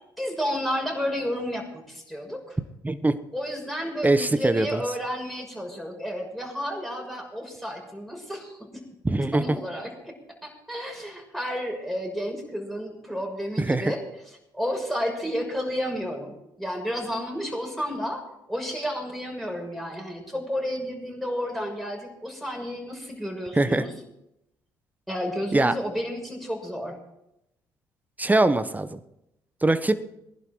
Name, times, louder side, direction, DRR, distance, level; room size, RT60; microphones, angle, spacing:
voice 1, 0.2-2.6 3.3-8.8 9.3-10.1 10.4-14.0 14.5-18.2 18.5-23.9 25.1-26.9, equal, ahead, 0 dB, 6.5 m, -31 dB
voice 2, 2.8-3.2 4.0-4.8 9.0-9.6 13.6-13.9 23.5-23.8 25.5-25.7 28.2-29.0 29.6-30.0, right 2 dB, 15° right, 12 dB, 1.3 m, -22 dB
21.0 x 11.0 x 4.7 m, 0.83 s
hypercardioid pair, 50°, 10 cm